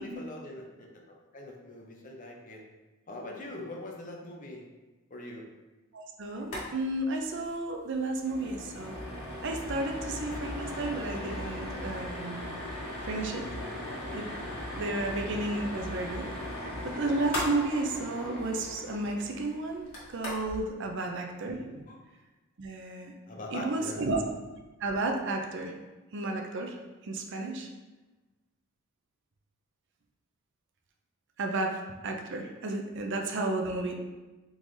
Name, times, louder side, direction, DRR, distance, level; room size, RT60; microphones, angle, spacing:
voice 1, 0.0-2.6 3.1-4.6 5.1-5.5 20.8-21.1 21.9-22.0 23.3-24.0, left 1 dB, 40° left, -1 dB, 0.7 m, -43 dB
voice 2, 5.9-9.0 9.4-12.5 13.0-13.5 14.1-14.3 14.8-16.3 16.6-21.8 22.6-23.1 23.5-24.2 24.8-25.7 26.1-26.8 27.0-27.7 31.4-34.0, right 2 dB, 55° right, 2 dB, 0.5 m, -32 dB
sound 1, 6.4-6.7 6.9-7.0 7.4-7.5 7.9-20.6, left 1 dB, 85° left, 1.5 m, -38 dB
3.9 x 3.8 x 3.2 m, 1.2 s
head